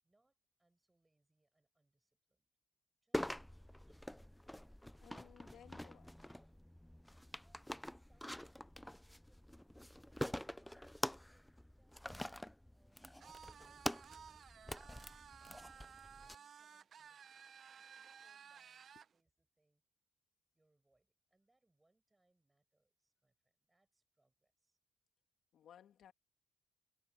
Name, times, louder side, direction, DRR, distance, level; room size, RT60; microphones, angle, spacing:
voice 1, 0.0-2.5 3.0-4.0 7.4-12.1 12.7-13.1 13.6-19.8 20.5-24.8, right 2 dB, 15° right, 7.4 m, -81 dB
Plastic Box, 3.1-16.3, left 1 dB, 5° left, 0.4 m, -46 dB
voice 2, 5.0-6.3 18.9-19.0 25.5-26.1, left 9 dB, 70° left, 2.7 m, -60 dB
sound 1, 13.2-19.1, right 7 dB, 55° right, 0.9 m, -57 dB
cardioid pair, 90°, 0 cm